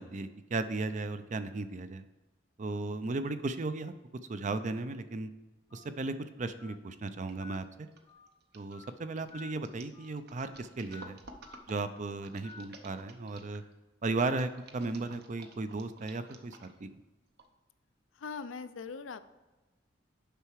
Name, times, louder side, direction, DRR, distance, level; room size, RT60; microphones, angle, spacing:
voice 1, 0.0-2.0 2.6-3.9 4.3-5.3 5.7-7.9 8.5-11.2 11.7-13.6 14.0-16.9, right 3 dB, 40° right, 11 dB, 0.5 m, -35 dB
Telephone, 5.7-5.9 6.6-6.8 7.4-7.6 8.1-8.3 8.7-8.9 9.3-9.5 9.9-10.1 10.4-10.6 10.9-11.1 11.4-11.6 11.9-12.1 12.4-12.6, left 5 dB, 20° left, 0.7 m, -51 dB
sound 1, 7.3-7.6 7.9-13.7 14.3-16.9 17.4-17.5, right 3 dB, 55° right, 0.9 m, -53 dB
voice 2, 18.1-19.2, left 5 dB, 85° left, 12 dB, 0.5 m, -41 dB
6.8 x 5.7 x 4.6 m, 1.1 s
head